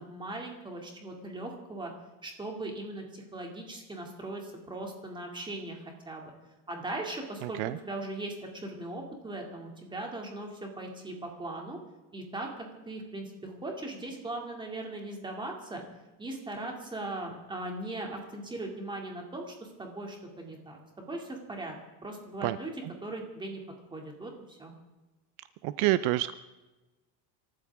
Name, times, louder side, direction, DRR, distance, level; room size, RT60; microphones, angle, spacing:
voice 1, 0.0-1.9 2.2-6.3 6.7-11.8 12.1-15.8 16.2-19.5 19.8-21.7 22.0-22.7 23.0-23.6 23.9-24.7, right 2 dB, 10° right, 1 dB, 2.5 m, -39 dB
voice 2, 7.4-7.8 22.4-22.6 25.6-26.3, right 17 dB, 60° right, 14 dB, 0.6 m, -27 dB
26.5 x 14.5 x 3.6 m, 1.1 s
cardioid pair, 170°, 47 cm